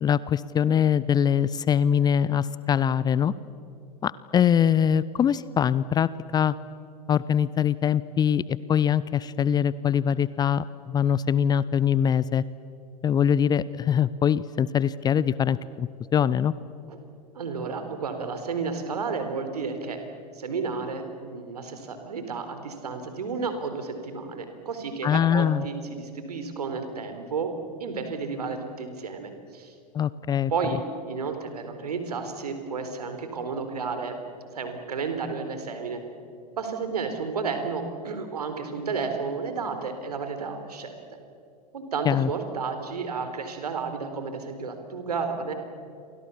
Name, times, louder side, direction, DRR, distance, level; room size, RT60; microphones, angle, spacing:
voice 1, 0.0-3.3 4.0-6.5 7.1-12.4 13.0-16.5 25.0-25.6 29.9-30.5 42.1-42.3, left 8 dB, 20° left, 18 dB, 0.6 m, -23 dB
voice 2, 17.3-20.0 20.3-27.5 27.8-29.7 30.5-30.8 31.1-34.2 34.5-36.0 36.5-41.2 41.7-45.5, right 5 dB, 70° right, 7 dB, 4.0 m, -32 dB
29.5 x 24.5 x 7.1 m, 2.4 s
figure-of-eight pair, 90°, 21 cm